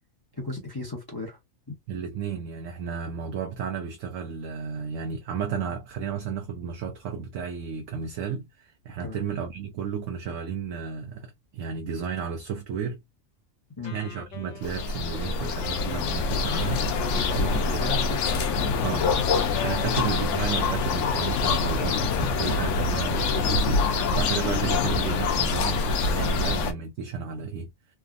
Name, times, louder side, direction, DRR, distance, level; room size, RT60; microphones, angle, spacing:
voice 1, 0.4-1.4 1.7-1.8 9.0-9.2 13.8-13.9 17.0-19.1 19.8-20.0, left 2 dB, 20° left, 0.7 m, -35 dB
voice 2, 1.9-13.0 13.9-17.6 18.8-19.1 19.5-27.7, right 6 dB, 75° right, 1.0 m, -33 dB
Wind instrument woodwind instrument, 13.8-21.0, left 8 dB, 90° left, 1.1 m, -42 dB
sound 1, 14.6-26.7, left 4 dB, 70° left, 0.9 m, -25 dB
3.4 x 2.0 x 2.4 m
omnidirectional pair, 1.4 m